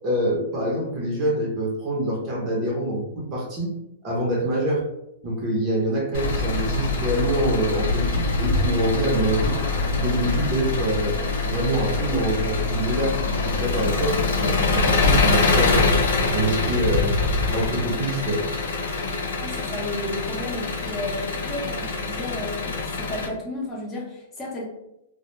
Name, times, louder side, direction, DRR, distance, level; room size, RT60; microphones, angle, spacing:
voice 1, 0.0-3.8 4.0-4.9 5.2-9.6 10.0-11.2 11.4-13.2 13.4-16.0 16.3-17.1 17.5-18.4, right 1 dB, 30° right, -3 dB, 0.7 m, -25 dB
Engine, 6.1-23.3, left 3 dB, 80° left, 0.6 m, -24 dB
voice 2, 19.4-24.6, left 1 dB, 20° left, -3 dB, 0.7 m, -33 dB
2.1 x 2.1 x 3.0 m, 0.88 s
hypercardioid pair, 135°, 0 cm